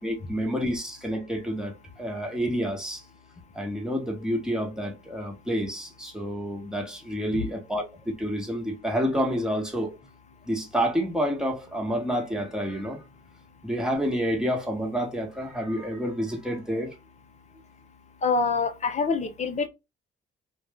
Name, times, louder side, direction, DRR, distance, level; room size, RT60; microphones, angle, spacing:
voice 1, 0.0-3.0 3.5-10.0 10.4-13.0 13.6-16.9, equal, 5° right, 1.3 m, -29 dB
voice 2, 18.2-19.7, left 4 dB, 35° left, 0.8 m, -25 dB
2.6 x 2.5 x 3.4 m
cardioid pair, 90°, 20 cm